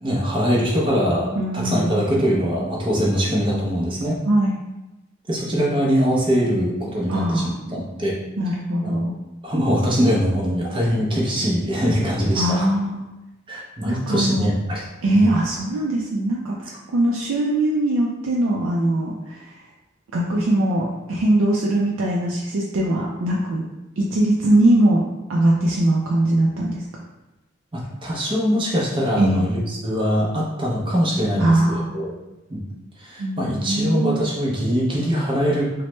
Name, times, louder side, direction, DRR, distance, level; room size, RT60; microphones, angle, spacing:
voice 1, 0.0-4.2 5.3-8.2 8.8-9.0 9.4-12.7 13.5-14.8 15.1-15.3 27.7-32.1 32.5-32.6 33.0-35.8, equal, 25° right, -3 dB, 0.5 m, -22 dB
voice 2, 1.4-2.1 4.2-4.6 7.1-7.9 8.4-9.1 12.4-13.1 13.8-14.5 15.0-19.6 20.1-23.6 24.0-25.0 25.3-26.8 29.2-29.5 31.4-31.9 33.2-34.3, right 1 dB, 90° right, -3 dB, 0.4 m, -21 dB
3.0 x 2.1 x 3.0 m, 1.0 s
head